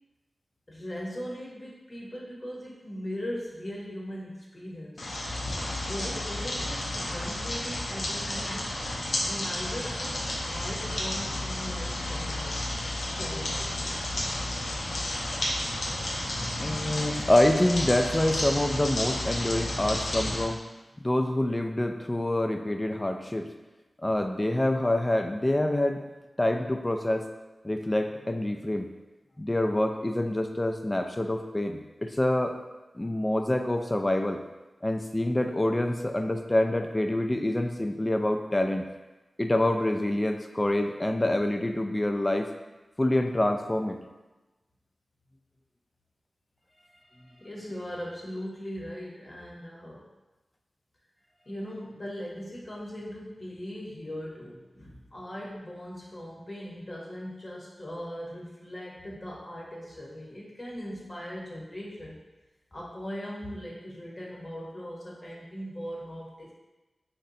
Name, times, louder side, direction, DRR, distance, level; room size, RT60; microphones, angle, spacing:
voice 1, 0.7-5.1 5.9-8.8 9.2-14.4 46.7-50.1 51.4-62.2 62.7-66.5, equal, 40° left, -4 dB, 0.9 m, -39 dB
sound 1, 5.0-20.4, left 1 dB, 75° left, 0.5 m, -32 dB
voice 2, 16.4-20.6 21.0-23.5 24.0-26.0 26.4-27.3 27.6-28.9 29.4-32.6 32.9-34.4 34.8-38.9 39.4-42.5 43.0-44.0, left 1 dB, 25° left, 5 dB, 0.3 m, -26 dB
2.7 x 2.2 x 3.9 m, 1.1 s
cardioid pair, 45°, 0 cm